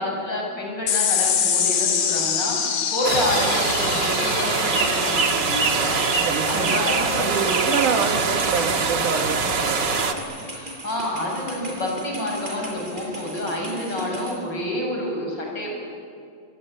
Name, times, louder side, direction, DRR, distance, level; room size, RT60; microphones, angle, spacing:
voice 1, 0.0-6.0 6.5-7.4 10.8-15.8, left 1 dB, 30° left, -1 dB, 7.7 m, -28 dB
sound 1, 0.9-7.7, left 7 dB, 90° left, 4.1 m, -26 dB
sound 2, 3.0-10.1, right 4 dB, 40° right, 1.8 m, -23 dB
sound 3, 5.2-14.3, right 1 dB, 10° right, 6.9 m, -38 dB
voice 2, 6.2-6.9 7.1-9.9, right 6 dB, 65° right, 4 dB, 2.7 m, -26 dB
27.0 x 22.0 x 9.1 m, 2.3 s
omnidirectional pair, 4.0 m